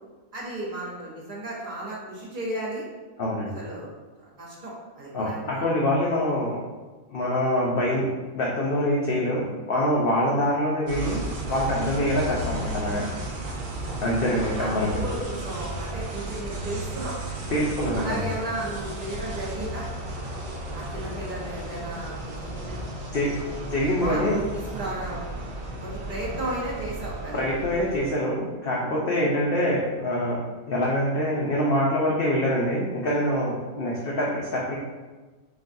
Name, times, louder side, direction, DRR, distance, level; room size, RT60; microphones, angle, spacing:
voice 1, 0.3-2.8 3.5-3.9 4.2-5.7 14.5-17.2 18.0-19.9 20.7-22.5 24.0-25.2 25.8-27.4, right 1 dB, 40° right, -5 dB, 0.9 m, -34 dB
voice 2, 3.2-3.5 5.1-6.6 7.1-8.1 8.3-11.2 11.5-13.1 14.0-14.9 17.5-18.3 23.1-23.3 23.7-24.4 27.3-30.4 30.7-34.8, left 1 dB, 55° left, -4 dB, 0.6 m, -25 dB
sound 1, 10.9-28.1, right 1 dB, 85° right, 1.2 m, -34 dB
5.9 x 2.3 x 2.6 m, 1.3 s
omnidirectional pair, 1.5 m